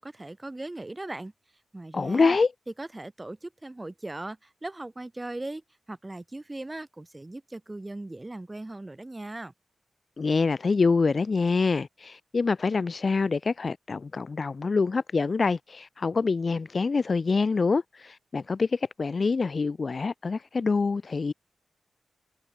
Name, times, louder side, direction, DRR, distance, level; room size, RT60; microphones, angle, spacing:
voice 1, 0.0-1.3 1.7-2.4 2.8-5.6 5.9-9.5, right 2 dB, 20° right, 4.1 m, -38 dB
voice 2, 1.9-2.5 10.2-21.3, left 4 dB, 45° left, 1.1 m, -25 dB
wide cardioid pair, 100°, 0 cm